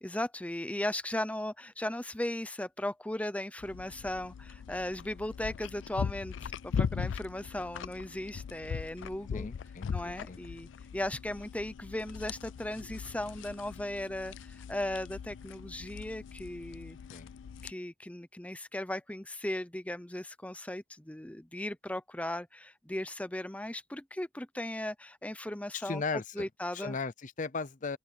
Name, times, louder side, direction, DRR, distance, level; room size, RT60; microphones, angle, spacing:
voice 1, 0.0-9.5 9.9-17.0 17.6-27.0, left 1 dB, 5° left, 0.7 m, -37 dB
sound 1, 3.6-17.7, left 6 dB, 75° left, 0.3 m, -40 dB
voice 2, 9.3-10.4 17.1-17.3 25.7-26.5 26.7-28.0, left 4 dB, 45° left, 0.7 m, -37 dB
open air
head